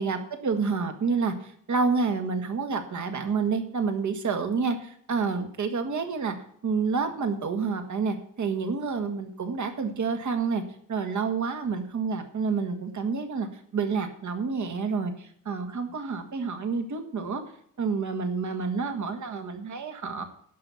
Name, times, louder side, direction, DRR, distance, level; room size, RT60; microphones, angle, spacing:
voice 1, 0.0-6.3 6.6-10.6 10.9-13.5 13.7-17.4 17.8-20.2, right 5 dB, 55° right, 6 dB, 1.9 m, -28 dB
11.5 x 5.8 x 8.3 m, 0.65 s
wide cardioid pair, 130°, 34 cm